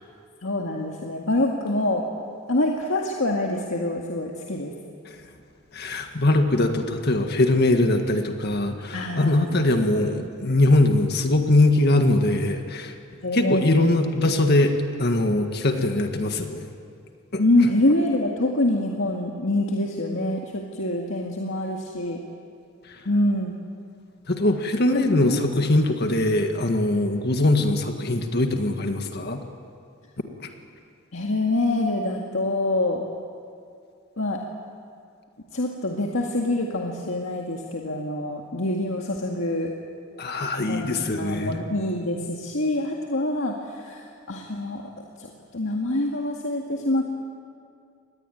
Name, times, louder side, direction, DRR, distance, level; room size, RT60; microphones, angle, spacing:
voice 1, 0.4-2.1 2.5-4.7 8.9-9.7 13.2-14.3 17.4-22.2 23.1-23.6 25.2-25.4 31.1-33.0 34.2-34.5 35.5-39.7 40.7-44.8 45.2-47.0, left 1 dB, 70° left, 0 dB, 2.0 m, -25 dB
voice 2, 5.7-12.9 13.3-14.7 15.0-16.7 17.3-17.4 24.3-29.4 30.4-30.5 40.2-41.6, left 2 dB, 55° left, 5 dB, 1.8 m, -22 dB
26.0 x 20.0 x 9.3 m, 2.4 s
head